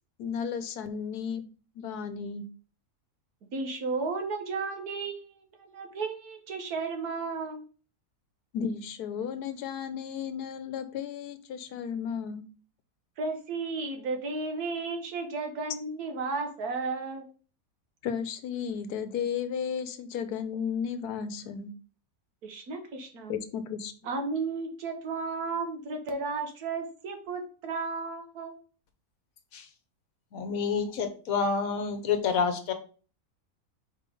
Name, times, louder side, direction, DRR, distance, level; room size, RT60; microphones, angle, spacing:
voice 1, 0.2-1.4 1.8-2.5 8.5-12.4 18.0-21.7 23.3-23.9, left 7 dB, 85° left, 11 dB, 1.3 m, -34 dB
voice 2, 3.5-7.7 13.2-17.2 22.4-23.3 24.0-28.6, right 4 dB, 75° right, 4 dB, 1.6 m, -34 dB
voice 3, 30.3-32.7, left 5 dB, 65° left, 8 dB, 1.2 m, -28 dB
4.7 x 3.8 x 5.2 m, 0.38 s
omnidirectional pair, 1.6 m